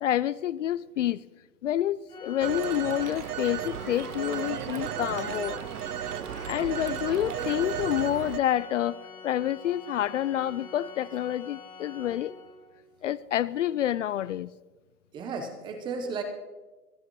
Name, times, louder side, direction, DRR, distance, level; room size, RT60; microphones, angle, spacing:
voice 1, 0.0-1.2 1.6-5.6 6.5-12.3 13.0-14.6, left 11 dB, 55° left, 0.5 m, -28 dB
Organ, 2.1-12.8, left 3 dB, 10° left, 1.6 m, -45 dB
Telephone, 2.4-8.4, right 10 dB, 85° right, 0.8 m, -34 dB
voice 2, 6.3-7.0 15.1-16.2, right 4 dB, 10° right, 0.7 m, -36 dB
28.0 x 9.9 x 3.1 m
hypercardioid pair, 145°, 45 cm